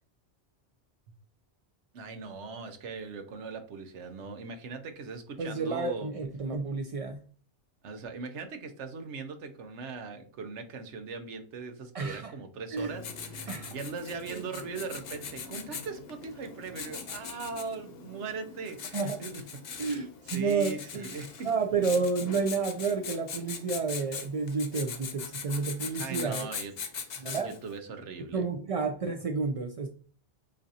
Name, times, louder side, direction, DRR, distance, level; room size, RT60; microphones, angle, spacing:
voice 1, 1.9-6.1 7.8-19.4 19.8-21.5 26.0-26.7 27.4-28.4, right 4 dB, 80° right, 8 dB, 1.0 m, -40 dB
voice 2, 5.4-7.2 11.9-12.3 12.7-13.0 13.5-13.7 14.3-14.5 18.9-19.2 19.8-21.1 21.4-26.5 27.2-27.6 28.3-29.9, right 4 dB, 60° right, 3 dB, 0.3 m, -30 dB
Writing, 12.8-27.7, left 6 dB, 60° left, 0.9 m, -41 dB
7.2 x 2.6 x 2.7 m, 0.41 s
omnidirectional pair, 1.2 m